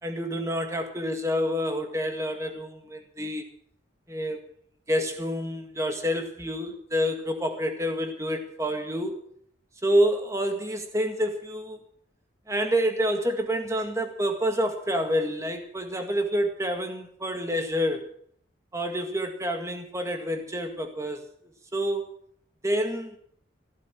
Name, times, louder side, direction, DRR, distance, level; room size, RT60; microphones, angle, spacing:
voice 1, 0.0-3.4 4.1-4.4 4.9-9.2 9.8-11.8 12.5-18.1 18.7-21.2 21.7-22.1 22.6-23.2, equal, 15° right, 5 dB, 1.9 m, -28 dB
15.5 x 13.5 x 6.1 m, 0.63 s
head